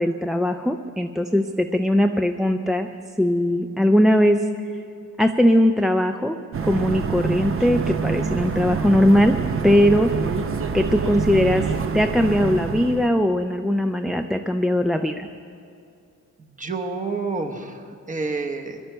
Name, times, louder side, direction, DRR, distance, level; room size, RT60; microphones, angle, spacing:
voice 1, 0.0-2.9 3.2-4.4 5.2-6.4 6.6-9.4 9.6-10.1 10.7-11.7 11.9-15.3, equal, ahead, 5 dB, 0.3 m, -20 dB
sound 1, 6.5-13.1, right 5 dB, 45° right, 0.7 m, -26 dB
voice 2, 16.4-18.8, right 3 dB, 25° right, 4 dB, 1.0 m, -29 dB
22.0 x 11.5 x 4.5 m, 2.5 s
wide cardioid pair, 170°, 31 cm